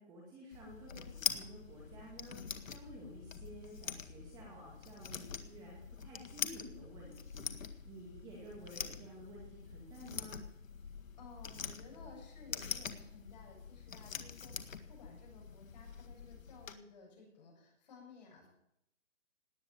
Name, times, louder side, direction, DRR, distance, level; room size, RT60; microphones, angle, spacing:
voice 1, 0.0-10.4, right 1 dB, 10° right, -3 dB, 2.3 m, -52 dB
sound 1, 0.5-16.7, left 6 dB, 80° left, 1.9 m, -44 dB
voice 2, 11.2-18.5, left 4 dB, 35° left, -1 dB, 7.2 m, -56 dB
18.5 x 8.3 x 9.3 m, 0.78 s
hypercardioid pair, 175°, 39 cm